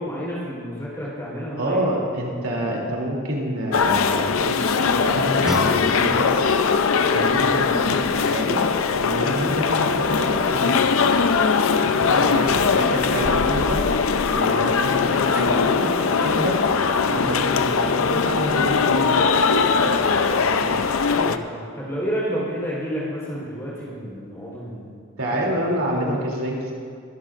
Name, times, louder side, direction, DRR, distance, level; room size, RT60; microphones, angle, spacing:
voice 1, 0.0-1.8 7.0-7.3 12.1-12.7 21.1-24.9 25.3-26.3, equal, 15° left, -6 dB, 3.9 m, -31 dB
voice 2, 1.5-6.3 7.1-8.6 8.9-10.9 11.8-13.8 14.3-20.8 25.2-26.7, right 1 dB, 80° right, -2 dB, 3.0 m, -28 dB
sound 1, 3.7-21.4, left 5 dB, 75° left, 0.5 m, -20 dB
Guitar, 5.4-8.2, equal, 5° right, 1.1 m, -34 dB
23.0 x 12.5 x 2.5 m, 2.1 s
head